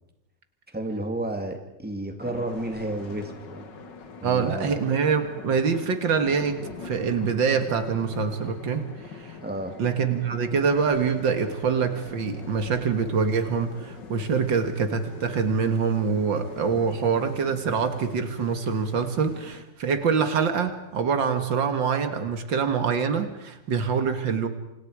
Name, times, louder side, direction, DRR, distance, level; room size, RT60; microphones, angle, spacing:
voice 1, 0.7-3.7 4.2-4.8 9.4-9.7, right 1 dB, 5° right, 4 dB, 2.1 m, -32 dB
sound 1, 2.2-19.6, left 5 dB, 70° left, 2.3 m, -43 dB
voice 2, 4.2-8.9 9.1-9.4 9.8-24.5, right 6 dB, 75° right, 8 dB, 2.4 m, -25 dB
28.0 x 27.0 x 4.9 m, 0.91 s
omnidirectional pair, 2.0 m